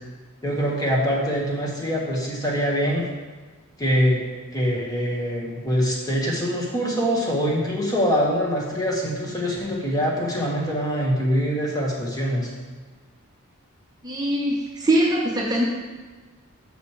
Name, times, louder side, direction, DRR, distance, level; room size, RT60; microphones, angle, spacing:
voice 1, 0.4-3.0 3.8-4.2 4.5-12.5, equal, 15° left, -3 dB, 1.5 m, -24 dB
voice 2, 14.0-15.6, right 1 dB, 20° right, -3 dB, 0.8 m, -22 dB
9.2 x 6.2 x 3.2 m, 1.4 s
head